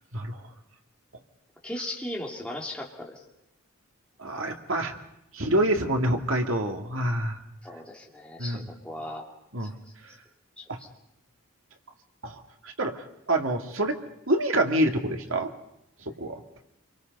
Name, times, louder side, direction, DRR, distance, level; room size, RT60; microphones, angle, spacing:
voice 1, 1.6-3.2 7.6-9.2 9.6-9.7 10.6-10.9, left 1 dB, 5° left, -2 dB, 2.8 m, -37 dB
voice 2, 4.2-4.9 5.3-7.4 8.4-8.6 9.5-9.7 10.7-10.8 12.2-13.0 13.3-14.0 14.3-15.5 16.2-16.4, right 1 dB, 65° right, 4 dB, 2.2 m, -26 dB
27.0 x 24.0 x 5.4 m, 0.82 s
head